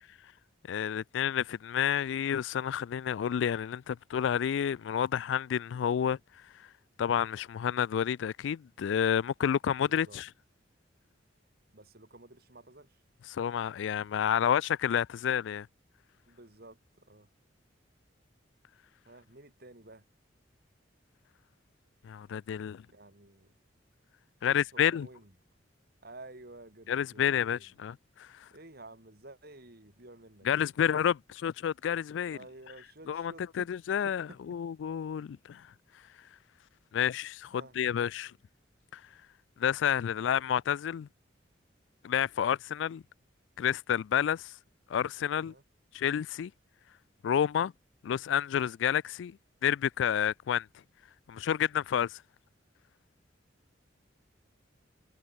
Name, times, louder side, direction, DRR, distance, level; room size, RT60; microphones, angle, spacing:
voice 1, 0.7-6.2 7.0-10.3 13.3-15.7 22.0-22.8 24.4-25.1 26.9-28.3 30.4-32.4 33.1-35.6 36.9-38.3 38.9-39.0 39.6-41.1 42.0-43.0 43.6-44.5 44.9-45.5 45.9-46.5 47.2-47.7 48.0-49.4 49.6-50.7 51.3-52.2, left 9 dB, 75° left, 0.3 m, -30 dB
voice 2, 9.9-10.2 11.7-13.0 16.3-17.3 19.1-20.0 22.9-23.5 24.4-25.3 26.0-27.7 28.5-30.6 32.3-33.7 34.0-34.6 37.5-37.8 40.1-40.4 45.4-45.6, right 2 dB, 55° right, 3.9 m, -52 dB
head